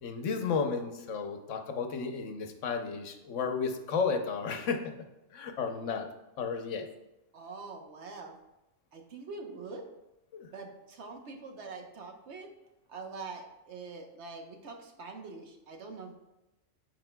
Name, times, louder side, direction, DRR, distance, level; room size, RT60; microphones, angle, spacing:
voice 1, 0.0-4.9 5.3-6.1 6.4-6.9 10.3-10.5, left 5 dB, 90° left, 5 dB, 1.2 m, -33 dB
voice 2, 7.3-8.4 8.9-9.8 10.5-12.5 12.9-16.1, right 4 dB, 70° right, 3 dB, 1.2 m, -44 dB
13.5 x 4.7 x 2.2 m, 0.96 s
omnidirectional pair, 1.2 m